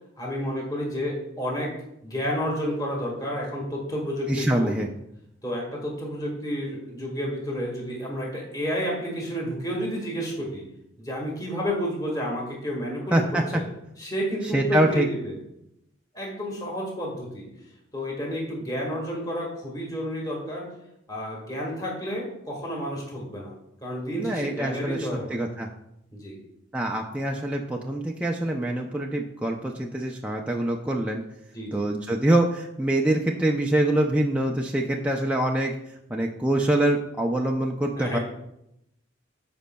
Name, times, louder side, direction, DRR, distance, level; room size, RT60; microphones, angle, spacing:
voice 1, 0.2-1.8 2.0-4.7 5.4-10.6 11.0-13.2 13.5-13.6 14.0-15.3 16.1-17.5 17.9-20.7 21.1-23.5 23.8-25.4 26.2-26.4 31.5-31.9 38.0-38.2, equal, 20° left, -2 dB, 1.7 m, -30 dB
voice 2, 4.3-4.9 13.1-13.4 14.5-15.1 24.1-25.7 26.7-31.2 31.7-35.7 36.1-38.2, right 1 dB, 5° right, 0 dB, 0.4 m, -25 dB
13.5 x 5.1 x 2.2 m, 0.81 s
head